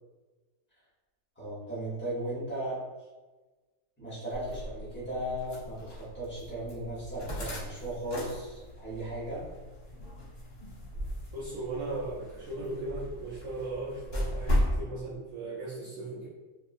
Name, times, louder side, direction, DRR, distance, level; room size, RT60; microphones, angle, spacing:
voice 1, 1.4-2.8 4.0-9.4, right 1 dB, 10° left, -9 dB, 0.8 m, -36 dB
sound 1, 4.3-14.8, equal, 40° left, 1.0 m, -36 dB
voice 2, 11.3-16.3, right 2 dB, 70° right, -8 dB, 0.9 m, -37 dB
2.6 x 2.5 x 2.4 m, 1.2 s
omnidirectional pair, 1.7 m